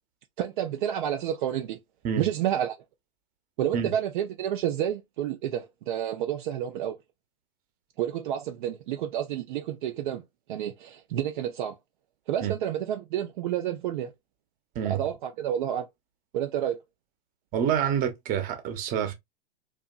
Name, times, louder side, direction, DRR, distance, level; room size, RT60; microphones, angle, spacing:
voice 1, 0.4-1.8 2.2-2.8 3.6-7.0 8.0-10.2 10.5-11.7 12.3-14.1 14.8-15.9 16.3-16.8, right 10 dB, 60° right, 0.5 m, -29 dB
voice 2, 17.5-19.1, right 8 dB, 30° right, 0.7 m, -27 dB
2.8 x 2.4 x 2.3 m
hypercardioid pair, 115°, 29 cm